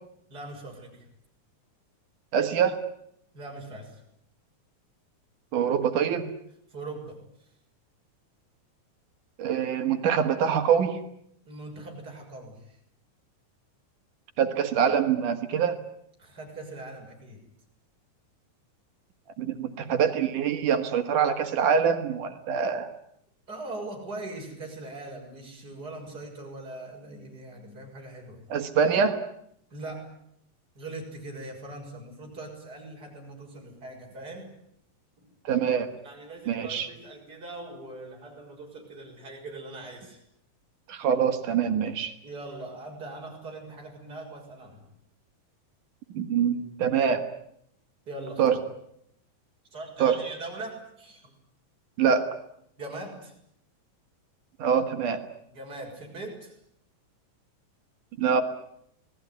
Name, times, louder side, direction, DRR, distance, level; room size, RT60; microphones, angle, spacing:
voice 1, 0.3-1.0 3.3-4.0 6.7-7.2 11.5-12.8 16.2-17.4 23.5-28.4 29.7-30.1 30.8-34.5 35.2-35.3 36.0-40.2 42.2-44.9 48.1-48.6 49.7-51.3 52.8-53.3 55.5-56.6, right 2 dB, 30° right, 0 dB, 7.1 m, -41 dB
voice 2, 2.3-2.8 5.5-6.2 9.4-11.0 14.4-15.8 19.4-22.9 28.5-29.2 35.4-35.9 36.5-36.9 40.9-42.2 46.1-47.2 48.4-48.6 50.0-50.2 52.0-52.3 54.6-55.2 58.2-58.4, right 7 dB, 75° right, 7 dB, 3.3 m, -24 dB
27.5 x 19.5 x 9.6 m, 0.73 s
omnidirectional pair, 3.6 m